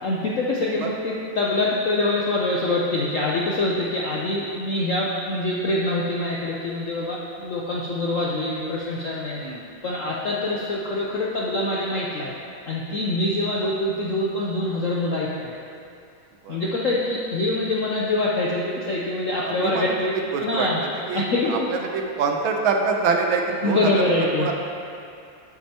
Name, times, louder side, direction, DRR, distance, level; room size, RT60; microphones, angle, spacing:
voice 1, 0.0-9.4 9.8-12.3 12.7-15.5 16.5-20.1 20.4-20.8 21.1-21.7 23.6-24.5, left 2 dB, 70° left, -4 dB, 0.7 m, -25 dB
voice 2, 19.4-20.0 20.3-24.5, right 4 dB, 85° right, 3 dB, 1.6 m, -26 dB
10.5 x 7.8 x 2.9 m, 2.5 s
omnidirectional pair, 2.2 m